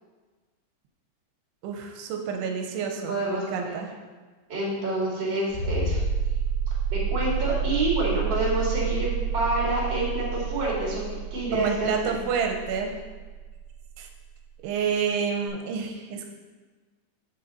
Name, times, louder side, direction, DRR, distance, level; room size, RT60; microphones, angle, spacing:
voice 1, 1.6-3.9 11.5-12.9 14.0-14.1 14.6-16.3, right 6 dB, 90° right, 3 dB, 2.7 m, -29 dB
voice 2, 3.1-3.8 4.5-6.0 6.9-11.0 11.3-12.2, right 1 dB, 35° right, -6 dB, 2.5 m, -28 dB
sound 1, 5.5-14.0 15.5-15.6, right 6 dB, 90° left, 3.9 m, -29 dB
7.4 x 6.8 x 4.0 m, 1.4 s
omnidirectional pair, 4.7 m